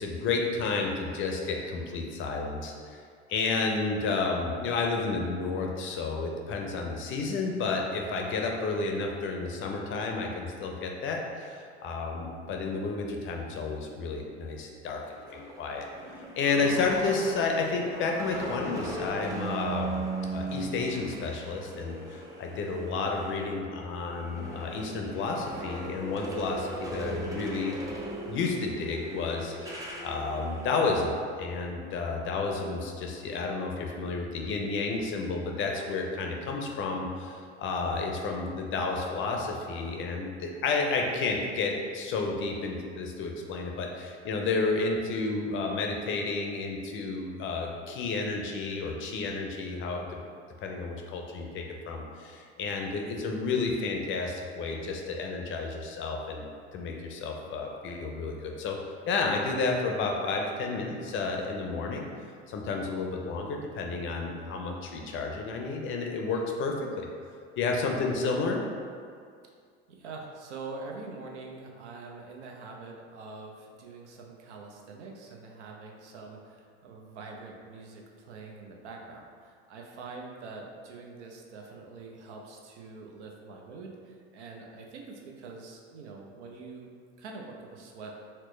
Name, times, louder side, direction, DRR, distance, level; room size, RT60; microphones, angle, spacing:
voice 1, 0.0-3.0 3.3-15.0 15.3-15.9 16.4-20.0 20.3-27.9 28.3-50.1 50.6-56.4 56.7-58.8 59.1-62.1 62.5-67.1 67.6-68.6, left 3 dB, 35° left, 1 dB, 0.5 m, -31 dB
sound 1, 15.1-23.5 23.8-30.7, right 2 dB, 10° right, 0.5 m, -38 dB
voice 2, 69.9-86.9 87.2-88.1, right 3 dB, 85° right, 0 dB, 0.6 m, -44 dB
4.3 x 2.0 x 3.1 m, 2.2 s
hypercardioid pair, 90°, 34 cm